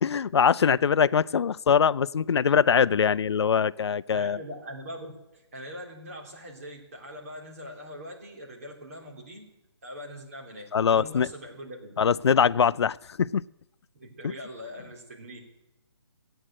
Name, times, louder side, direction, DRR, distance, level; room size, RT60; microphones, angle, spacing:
voice 1, 0.0-4.4 10.7-11.3 12.0-13.4 14.2-14.3, left 7 dB, 70° left, 16 dB, 0.4 m, -22 dB
voice 2, 4.1-5.1 5.5-9.5 9.8-11.9 13.9-15.4, equal, 30° right, -2 dB, 3.1 m, -42 dB
14.5 x 8.8 x 8.8 m, 0.92 s
hypercardioid pair, 180°, 14 cm